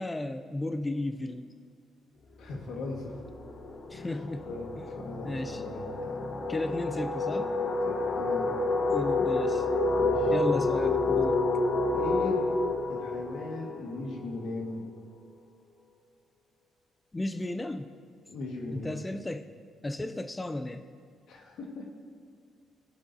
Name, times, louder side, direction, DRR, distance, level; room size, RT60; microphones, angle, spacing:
voice 1, 0.0-1.5 3.9-4.5 4.8-4.9 5.2-5.6 6.5-7.5 8.9-9.7 10.3-11.4 17.1-17.9 18.7-19.5 19.8-20.9, left 2 dB, 20° left, 8 dB, 0.4 m, -34 dB
voice 2, 2.4-3.2 3.9-4.1 4.4-6.3 7.3-8.5 10.0-10.3 11.9-12.4 12.9-14.8 18.3-19.0 21.3-21.9, left 2 dB, 75° left, 1 dB, 1.7 m, -39 dB
sound 1, 2.4-2.6 2.9-14.5, left 3 dB, 55° left, 1.3 m, -29 dB
19.5 x 7.2 x 2.7 m, 2.2 s
cardioid pair, 90°, 0 cm